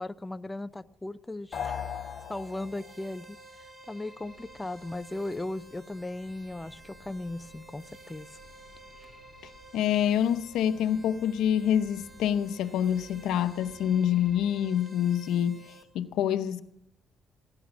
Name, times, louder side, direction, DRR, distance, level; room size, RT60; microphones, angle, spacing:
voice 1, 0.0-1.8 2.3-3.4 3.9-8.3, left 2 dB, 15° left, 0.5 m, -37 dB
sound 1, 1.5-3.0, left 8 dB, 55° left, 1.0 m, -37 dB
sound 2, 1.5-15.8, right 1 dB, 25° right, 2.9 m, -52 dB
sound 3, 4.1-14.3, equal, 65° right, 6.9 m, -57 dB
voice 2, 9.7-15.6 15.9-16.6, left 9 dB, 85° left, 0.8 m, -26 dB
16.0 x 11.0 x 6.1 m
cardioid pair, 90°, 0 cm